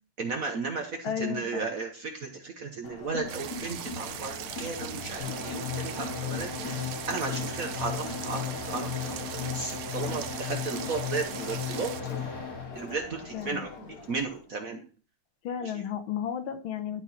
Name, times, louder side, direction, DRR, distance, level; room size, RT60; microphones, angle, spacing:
voice 1, 0.2-11.9 12.7-13.7 14.1-14.8 15.6-15.7, right 4 dB, 55° right, 3 dB, 1.0 m, -35 dB
voice 2, 1.0-1.6 13.3-13.7 15.4-17.0, left 9 dB, 75° left, 7 dB, 1.6 m, -33 dB
Crowd, 2.8-14.4, left 3 dB, 50° left, 1.4 m, -40 dB
sound 1, 3.3-12.0, right 11 dB, 90° right, 1.5 m, -40 dB
sound 2, 5.2-12.8, left 7 dB, 35° left, 2.6 m, -36 dB
11.5 x 4.3 x 4.2 m, 0.40 s
omnidirectional pair, 2.4 m